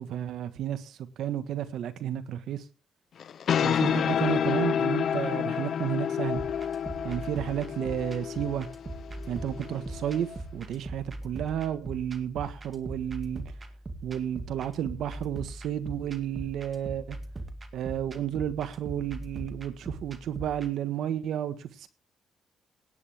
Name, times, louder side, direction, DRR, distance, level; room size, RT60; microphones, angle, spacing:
voice 1, 0.0-2.6 3.6-6.4 7.0-8.7 9.3-13.4 14.0-17.2 17.7-21.9, right 10 dB, 75° right, 1.5 m, -32 dB
sound 1, 3.2-10.4, left 8 dB, 60° left, 0.8 m, -29 dB
sound 2, 6.4-20.7, right 2 dB, 30° right, 2.2 m, -41 dB
17.5 x 10.0 x 3.6 m
cardioid pair, 90°, 0 cm